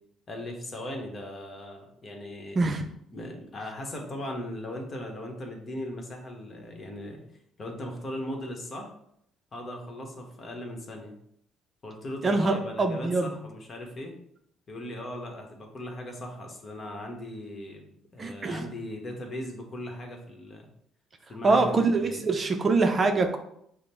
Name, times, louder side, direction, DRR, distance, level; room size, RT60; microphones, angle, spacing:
voice 1, 0.3-2.7 3.1-7.2 7.6-8.9 9.5-11.1 11.8-14.1 14.7-20.7 21.3-22.3, left 1 dB, 40° left, 2 dB, 1.1 m, -38 dB
voice 2, 12.2-13.4 18.2-18.6 21.4-23.4, right 3 dB, 35° right, 5 dB, 0.5 m, -24 dB
5.0 x 2.1 x 4.4 m, 0.72 s
supercardioid pair, 85°, 0 cm